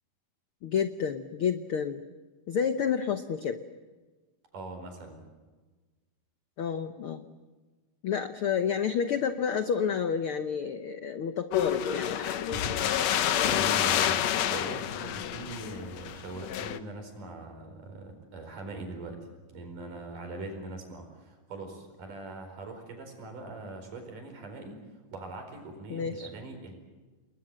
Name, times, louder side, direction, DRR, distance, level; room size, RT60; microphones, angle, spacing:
voice 1, 0.6-2.0 2.5-3.6 6.6-7.3 8.0-12.5 14.4-14.6 25.9-26.3, left 7 dB, 80° left, 9 dB, 1.2 m, -30 dB
voice 2, 4.5-5.3 12.5-24.8 25.1-26.7, right 2 dB, 75° right, 5 dB, 6.2 m, -42 dB
sound 1, 11.5-16.8, left 10 dB, 65° left, 1.9 m, -28 dB
29.5 x 21.0 x 7.7 m, 1.3 s
omnidirectional pair, 3.8 m